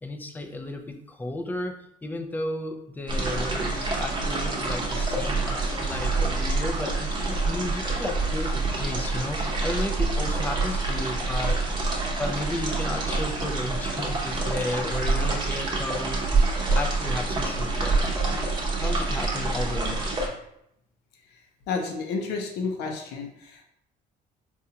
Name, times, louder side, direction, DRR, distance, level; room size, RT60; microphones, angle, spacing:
voice 1, 0.0-18.2 18.8-20.0, left 1 dB, 10° left, 5 dB, 0.4 m, -34 dB
sound 1, 3.1-20.3, right 3 dB, 25° right, 0.8 m, -26 dB
voice 2, 21.3-23.6, left 4 dB, 80° left, 3 dB, 0.7 m, -31 dB
4.2 x 2.4 x 2.7 m, 0.75 s
cardioid pair, 110°, 17 cm